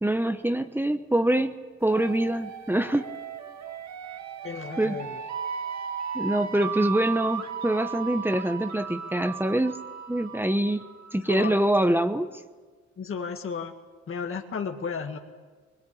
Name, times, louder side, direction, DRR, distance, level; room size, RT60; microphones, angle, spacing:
voice 1, 0.0-3.1 4.8-4.9 6.1-9.8 10.1-10.8 11.1-12.3, right 1 dB, 5° right, 8 dB, 1.1 m, -25 dB
sound 1, 1.8-11.5, right 7 dB, 65° right, 1.8 m, -36 dB
voice 2, 4.4-5.2 11.3-11.6 13.0-13.7 14.1-15.2, left 6 dB, 45° left, 4 dB, 2.0 m, -33 dB
22.0 x 21.0 x 8.7 m, 1.4 s
cardioid pair, 90°, 30 cm